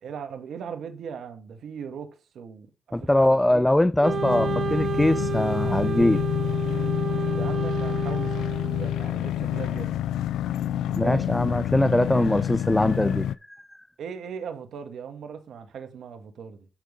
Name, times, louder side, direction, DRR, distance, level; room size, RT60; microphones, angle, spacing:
voice 1, 0.0-2.1 2.3-3.7 7.3-10.0 10.7-11.4 14.0-16.7, right 7 dB, 75° right, 1.6 m, -39 dB
voice 2, 2.9-6.2 10.9-13.7, left 1 dB, 15° left, 0.5 m, -22 dB
Wind instrument woodwind instrument, 4.0-9.1, right 7 dB, 60° right, 0.3 m, -31 dB
sound 1, 4.1-13.3, left 11 dB, 85° left, 0.3 m, -28 dB
10.5 x 3.7 x 5.2 m
supercardioid pair, 45°, 0 cm